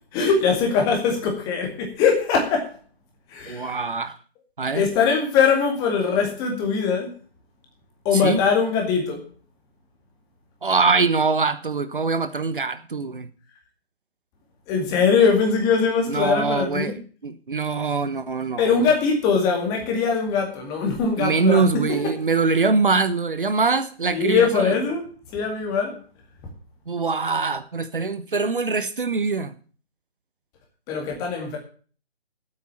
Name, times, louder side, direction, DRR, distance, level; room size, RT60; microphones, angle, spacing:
voice 1, 0.1-2.7 3.3-3.8 4.7-7.1 8.0-9.3 14.7-17.0 18.6-22.0 24.1-26.0 30.9-31.6, left 5 dB, 10° left, 2 dB, 2.2 m, -21 dB
voice 2, 3.5-4.2 4.6-4.8 8.1-8.4 10.6-13.3 16.1-16.9 17.2-18.9 21.2-24.7 26.9-29.5, right 4 dB, 55° right, 11 dB, 1.2 m, -23 dB
9.4 x 8.4 x 8.7 m, 0.41 s
figure-of-eight pair, 150°, 31 cm